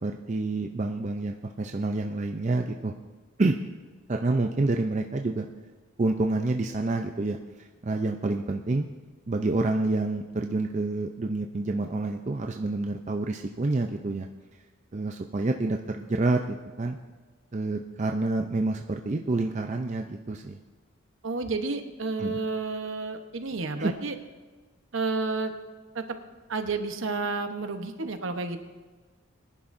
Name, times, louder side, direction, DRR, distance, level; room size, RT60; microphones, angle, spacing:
voice 1, 0.0-2.9 3.4-3.6 4.1-5.5 6.0-8.9 9.3-14.3 14.9-17.0 17.5-20.6 22.2-22.4 23.8-23.9, right 2 dB, 35° right, 3 dB, 0.5 m, -28 dB
voice 2, 21.2-24.2 24.9-25.5 25.9-26.0 26.5-28.6, right 3 dB, 65° right, 7 dB, 1.0 m, -30 dB
21.5 x 10.5 x 2.6 m, 1.3 s
head